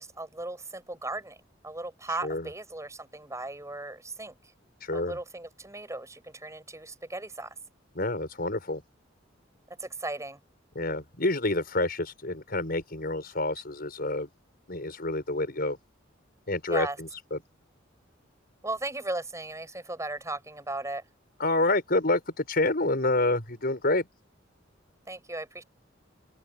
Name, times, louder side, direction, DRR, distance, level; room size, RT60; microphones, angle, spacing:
voice 1, 0.0-1.4 1.6-4.4 4.9-7.5 9.7-10.4 16.7-17.0 18.6-21.0 25.1-25.6, right 2 dB, 15° right, 8.0 m, -36 dB
voice 2, 4.8-5.2 8.0-8.8 10.7-14.3 14.7-15.8 16.5-17.4 21.4-24.1, left 2 dB, 50° left, 5.8 m, -28 dB
open air
head